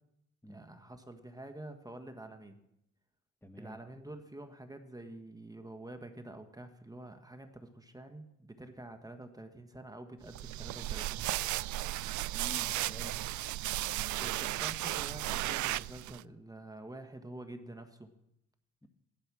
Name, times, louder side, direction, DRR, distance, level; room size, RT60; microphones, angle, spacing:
voice 1, 0.5-2.6 3.6-11.5 14.2-18.1, right 1 dB, 10° right, 6 dB, 1.4 m, -48 dB
voice 2, 3.4-3.8 12.3-13.3 13.8-14.1 18.8-18.9, left 1 dB, 5° left, 7 dB, 1.5 m, -49 dB
sound 1, 10.3-16.2, right 16 dB, 75° right, 0.5 m, -35 dB
17.0 x 12.0 x 6.2 m, 0.84 s
cardioid pair, 90°, 30 cm